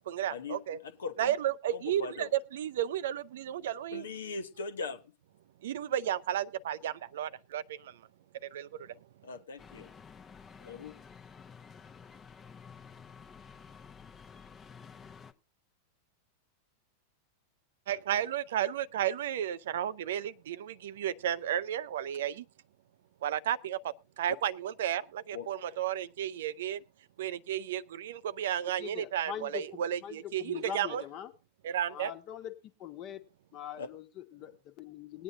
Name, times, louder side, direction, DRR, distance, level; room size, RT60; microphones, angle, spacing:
voice 1, 0.1-0.8 1.2-4.0 5.6-8.0 8.4-8.9 17.9-22.4 23.2-26.8 27.2-31.0 31.6-32.1, right 11 dB, 60° right, 0.5 m, -33 dB
voice 2, 0.8-1.3 1.7-2.3 3.9-5.0 9.2-9.9 10.6-10.9 25.3-25.5 33.8-33.9, left 4 dB, 65° left, 1.1 m, -40 dB
sound 1, 9.6-15.3, left 6 dB, 20° left, 0.8 m, -51 dB
voice 3, 28.8-31.3 31.9-32.5 32.8-33.2 33.5-35.2, left 9 dB, 40° left, 1.2 m, -42 dB
20.5 x 9.4 x 2.6 m
figure-of-eight pair, 90°, 0 cm